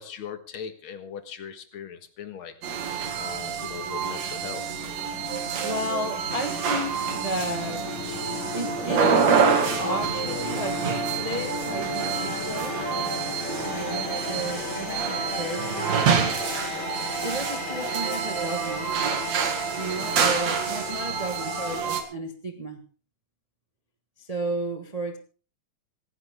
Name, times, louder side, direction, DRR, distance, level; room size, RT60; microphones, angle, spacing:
voice 1, 0.0-2.5 3.2-4.7, left 7 dB, 50° left, 2.1 m, -39 dB
sound 1, 2.6-22.0, right 6 dB, 65° right, 3.2 m, -27 dB
sound 2, 3.4-21.7, left 4 dB, 75° left, 3.4 m, -35 dB
voice 2, 5.6-7.9 8.5-9.5 9.8-12.8 13.6-16.3 17.2-18.9 19.8-22.9 24.2-25.2, right 1 dB, 90° right, 0.3 m, -33 dB
sound 3, 14.4-22.1, left 2 dB, 20° right, 3.7 m, -45 dB
27.5 x 9.9 x 3.6 m
omnidirectional pair, 3.3 m